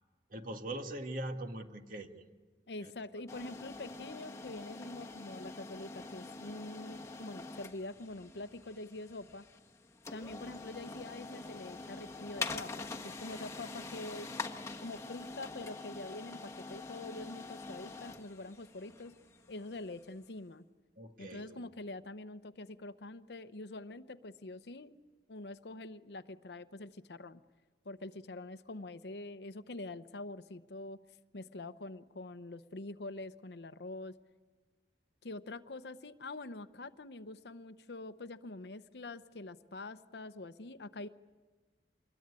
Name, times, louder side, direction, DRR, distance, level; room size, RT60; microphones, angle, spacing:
voice 1, 0.3-2.2 2.8-2.9 21.0-21.7, right 1 dB, 50° right, 5 dB, 1.8 m, -41 dB
voice 2, 2.7-9.5 10.1-14.3 14.8-19.2 19.5-20.6 21.2-25.0 25.3-27.4 27.8-31.0 31.3-34.1 35.2-41.1, left 2 dB, 65° left, 12 dB, 0.8 m, -45 dB
sound 1, 3.3-20.1, left 3 dB, 20° left, 1.2 m, -45 dB
25.5 x 21.5 x 9.7 m, 1.4 s
head